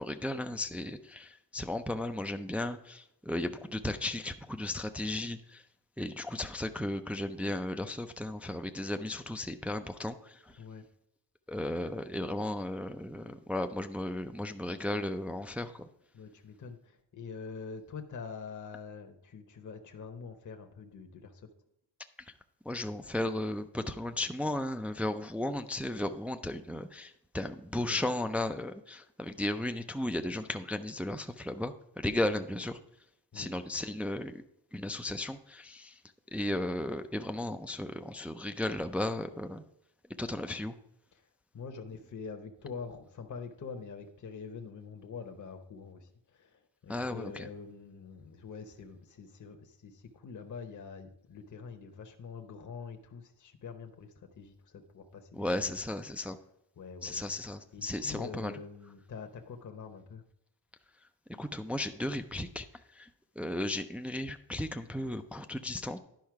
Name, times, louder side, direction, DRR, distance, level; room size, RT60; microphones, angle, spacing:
voice 1, 0.0-5.6 6.0-10.6 11.5-15.9 22.2-22.3 22.7-32.8 33.3-34.4 34.7-36.0 36.3-39.6 40.2-40.8 46.9-47.5 55.3-56.4 57.0-58.5 61.4-63.1 63.4-66.0, left 1 dB, 5° right, 7 dB, 0.3 m, -35 dB
voice 2, 16.1-21.5 27.8-28.0 32.2-32.4 33.3-33.5 41.2-41.3 41.5-55.7 56.8-57.2 57.7-60.2, left 5 dB, 45° left, 5 dB, 0.9 m, -45 dB
10.5 x 5.5 x 4.7 m, 0.80 s
wide cardioid pair, 140°, 43 cm